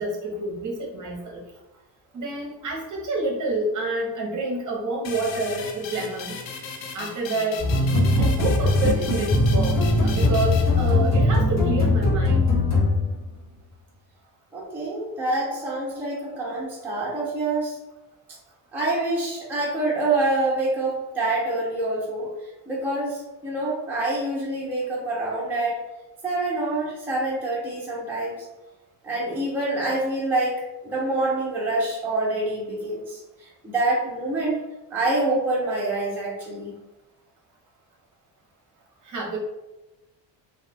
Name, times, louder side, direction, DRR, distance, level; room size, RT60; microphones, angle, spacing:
voice 1, 0.0-1.4 2.1-6.4 6.9-7.6 8.2-12.5 39.0-39.4, right 2 dB, 40° right, -2 dB, 0.8 m, -28 dB
sound 1, 5.0-11.4, left 5 dB, 75° left, 0.6 m, -37 dB
sound 2, 7.6-13.3, left 2 dB, 35° left, 1.4 m, -20 dB
voice 2, 14.5-17.8 18.7-22.3 22.7-25.8 26.2-28.4 29.0-30.5 30.8-34.6 34.9-36.7, right 2 dB, 5° right, -6 dB, 0.5 m, -26 dB
2.8 x 2.3 x 3.3 m, 1.0 s
cardioid pair, 160°, 45 cm